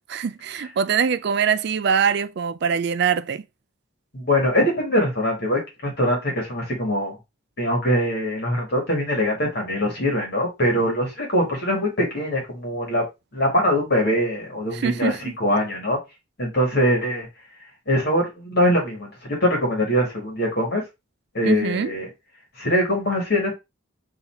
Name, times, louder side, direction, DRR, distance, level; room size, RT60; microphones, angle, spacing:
voice 1, 0.1-3.4 14.7-15.3 21.4-21.9, right 6 dB, 55° right, 0.4 m, -23 dB
voice 2, 4.1-7.2 7.6-13.0 13.3-16.0 16.4-17.3 17.9-20.8 21.3-22.1 22.6-23.5, equal, 50° left, 1.7 m, -22 dB
4.0 x 2.8 x 4.2 m
head